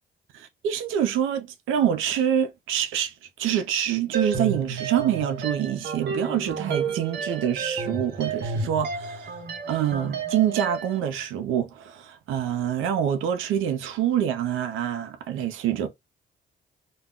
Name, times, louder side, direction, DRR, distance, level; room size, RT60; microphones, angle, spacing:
voice 1, 0.3-3.1 3.4-9.4 9.7-15.9, right 10 dB, 85° right, 0.5 m, -26 dB
sound 1, 4.1-11.0, right 5 dB, 60° right, 0.9 m, -31 dB
2.2 x 2.1 x 3.5 m
cardioid pair, 90°, 20 cm